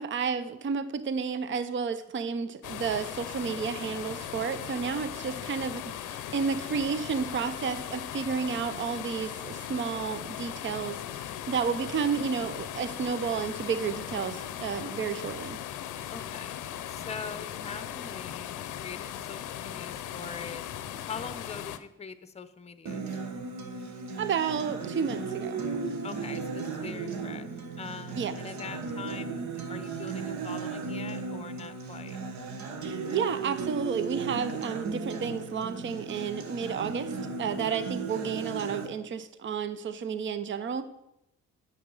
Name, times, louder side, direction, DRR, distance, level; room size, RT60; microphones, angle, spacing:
voice 1, 0.0-15.6 24.2-25.6 28.2-28.3 32.8-37.1 37.4-40.8, right 6 dB, 40° right, 12 dB, 0.7 m, -31 dB
sound 1, 2.6-21.8, left 11 dB, 80° left, 0.6 m, -38 dB
voice 2, 5.2-5.5 16.1-20.6 21.1-23.0 26.0-27.5 27.8-32.2, left 5 dB, 20° left, 12 dB, 0.7 m, -43 dB
Acoustic guitar, 22.9-38.9, right 4 dB, 65° right, 1.4 m, -36 dB
8.5 x 6.1 x 5.5 m, 0.87 s
cardioid pair, 90°, 30 cm